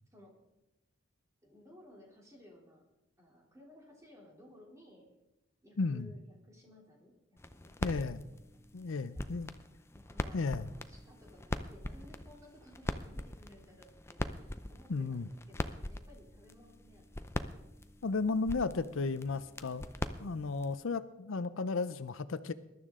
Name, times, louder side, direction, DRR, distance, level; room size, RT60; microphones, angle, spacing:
voice 1, 1.4-2.8 3.2-5.0 5.6-8.0 8.5-9.0 9.3-9.4 9.9-17.4, left 1 dB, 15° right, -1 dB, 3.1 m, -58 dB
voice 2, 5.8-6.1 7.8-8.2 8.7-9.5 10.3-10.7 14.9-15.3 18.0-19.9 20.2-22.5, left 4 dB, 75° left, 14 dB, 0.6 m, -34 dB
sound 1, 7.4-20.8, left 1 dB, 10° left, 0.5 m, -42 dB
20.5 x 12.0 x 3.7 m, 0.96 s
head